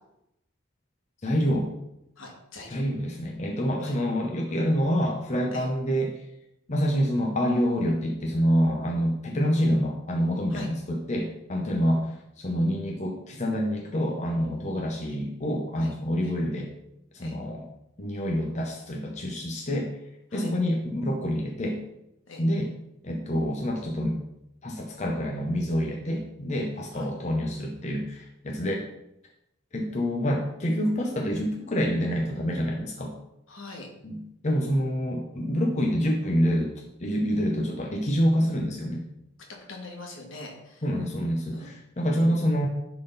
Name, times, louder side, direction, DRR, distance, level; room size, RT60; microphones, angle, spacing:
voice 1, 1.2-1.7 2.7-6.2 6.7-16.7 17.1-17.6 18.0-19.9 20.3-21.8 22.4-22.7 23.0-24.2 24.6-28.8 29.7-33.1 34.0-36.7 37.0-39.0 40.8-42.7, equal, 35° left, 0 dB, 0.7 m, -27 dB
voice 2, 2.2-2.8 3.8-3.9 5.5-5.7 10.5-10.7 15.1-15.2 15.8-15.9 16.2-16.3 17.2-17.4 20.3-20.5 22.3-22.4 26.9-27.1 33.5-33.9 39.7-40.8 41.5-41.7, left 2 dB, 75° left, 0 dB, 1.8 m, -43 dB
10.5 x 3.9 x 3.9 m, 0.84 s
head